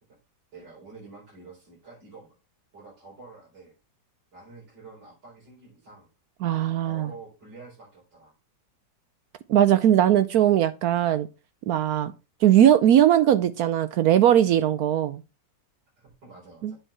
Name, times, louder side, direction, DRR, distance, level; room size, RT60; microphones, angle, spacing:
voice 1, 0.5-2.3 2.7-3.7 4.3-6.1 6.8-8.3 16.0-16.8, right 3 dB, 90° right, 4.9 m, -47 dB
voice 2, 6.4-7.1 9.5-11.3 11.7-12.1 12.4-15.2 16.6-16.7, right 11 dB, 70° right, 1.0 m, -19 dB
7.9 x 4.5 x 5.8 m
omnidirectional pair, 1.9 m